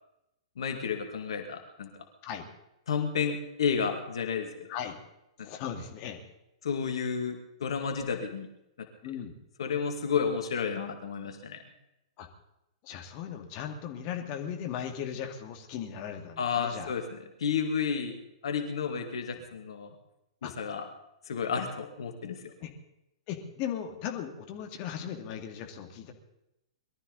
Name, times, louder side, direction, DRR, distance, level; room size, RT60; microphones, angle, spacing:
voice 1, 0.6-1.9 2.9-4.7 5.4-5.5 6.6-8.5 8.8-9.2 9.6-11.6 16.4-18.1 18.4-20.0 20.4-20.9 21.3-22.5, left 6 dB, 65° left, 5 dB, 2.1 m, -31 dB
voice 2, 5.4-6.2 9.0-9.3 12.2-12.3 12.8-16.9 19.3-19.4 20.4-20.5 22.6-22.7 23.3-26.1, left 9 dB, 40° left, 4 dB, 2.2 m, -37 dB
22.5 x 13.0 x 4.1 m, 0.87 s
figure-of-eight pair, 110°, 3 cm